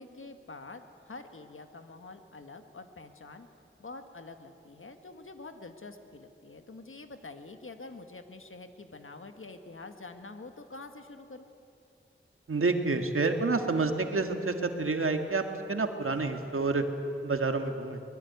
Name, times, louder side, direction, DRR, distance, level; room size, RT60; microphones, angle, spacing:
voice 1, 0.0-3.5 3.8-11.5, left 3 dB, 75° left, 7 dB, 1.8 m, -46 dB
voice 2, 12.5-16.9 17.2-18.0, right 3 dB, 85° right, 5 dB, 1.9 m, -28 dB
23.0 x 21.0 x 9.5 m, 2.7 s
wide cardioid pair, 45°, 21 cm